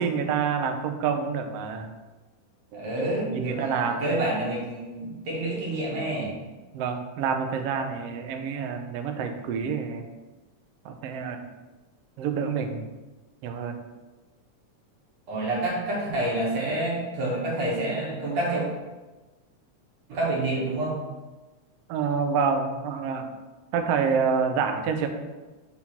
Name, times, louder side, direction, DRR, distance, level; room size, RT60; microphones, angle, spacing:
voice 1, 0.0-1.9 2.7-2.9 3.3-4.2 6.7-10.1 10.8-11.4 12.2-12.8 13.4-13.8 21.9-23.3 23.7-25.1, right 6 dB, 90° right, 6 dB, 1.3 m, -27 dB
voice 2, 2.7-6.3 15.3-18.6 20.1-21.0, right 1 dB, 60° right, -5 dB, 2.9 m, -28 dB
6.4 x 4.0 x 5.7 m, 1.2 s
omnidirectional pair, 3.6 m